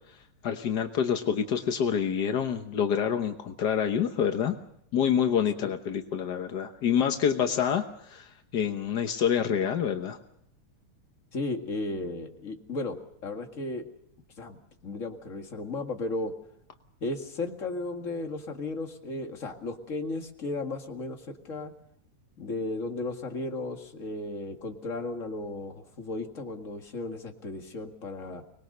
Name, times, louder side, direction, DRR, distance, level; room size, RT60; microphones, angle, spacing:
voice 1, 0.4-4.5 4.9-7.8 8.1-8.3 8.5-10.2, left 8 dB, 70° left, 6 dB, 0.9 m, -27 dB
voice 2, 11.3-13.9 14.4-16.3 17.0-21.7 22.4-28.4, left 2 dB, 30° left, 4 dB, 1.9 m, -35 dB
25.0 x 20.5 x 6.6 m, 0.70 s
omnidirectional pair, 3.4 m